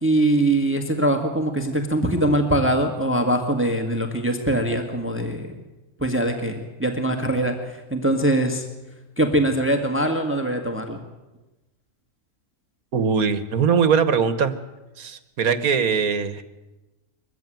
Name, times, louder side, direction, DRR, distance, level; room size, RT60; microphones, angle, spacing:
voice 1, 0.0-5.6 6.0-8.7 9.2-11.0, right 1 dB, 10° right, 4 dB, 1.8 m, -22 dB
voice 2, 12.9-14.5 15.0-16.4, right 6 dB, 70° right, 13 dB, 1.6 m, -21 dB
22.5 x 15.0 x 9.2 m, 1.1 s
omnidirectional pair, 1.6 m